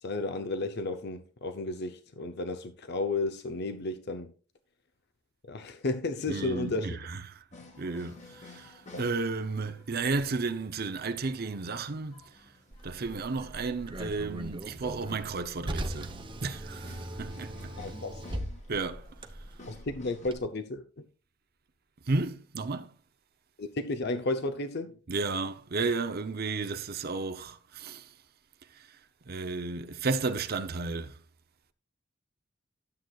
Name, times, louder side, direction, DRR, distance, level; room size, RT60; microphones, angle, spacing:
voice 1, 0.0-4.3 5.4-7.0 8.9-9.0 17.8-18.2 19.7-20.8 23.6-25.0, left 2 dB, 55° left, 0.7 m, -33 dB
voice 2, 6.3-7.4 7.8-12.3 12.8-16.1 16.4-17.8 18.7-19.1 22.1-22.9 25.1-28.1 28.7-29.0 29.3-31.2, right 3 dB, 50° right, 0.7 m, -33 dB
sound 1, 7.5-20.3, left 2 dB, 35° left, 1.8 m, -54 dB
Car, 12.7-20.4, right 1 dB, 25° right, 0.9 m, -40 dB
13.0 x 7.9 x 2.4 m
head